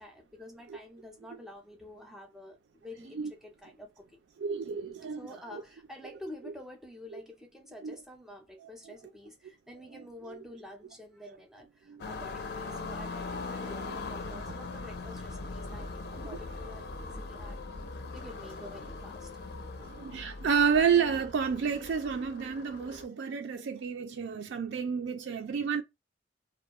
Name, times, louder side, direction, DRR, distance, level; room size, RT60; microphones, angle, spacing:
voice 1, 0.0-4.2 5.2-17.6 18.1-19.3, left 1 dB, ahead, 0.4 m, -48 dB
voice 2, 4.4-5.2 5.5-5.6 7.1-7.2 7.8-7.9 10.3-10.4 11.3-11.4 11.9-12.0 19.8-25.8, right 6 dB, 70° right, 0.3 m, -30 dB
sound 1, 12.0-23.0, left 3 dB, 55° left, 0.4 m, -40 dB
2.3 x 2.1 x 2.8 m
head